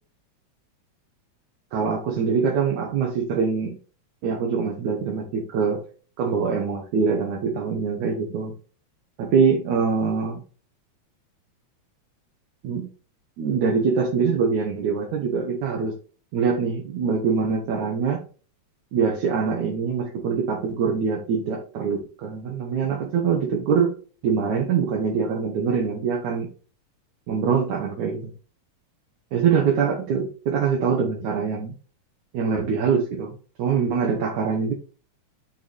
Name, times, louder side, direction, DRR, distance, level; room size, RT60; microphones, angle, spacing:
voice 1, 1.7-3.8 4.2-5.8 6.2-8.6 9.2-10.4 12.6-12.9 13.4-16.0 16.3-18.2 18.9-24.0 24.2-26.5 27.3-28.3 29.3-31.8 32.3-34.7, right 6 dB, 75° right, 0 dB, 2.8 m, -24 dB
6.4 x 6.3 x 3.5 m, 0.38 s
omnidirectional pair, 3.4 m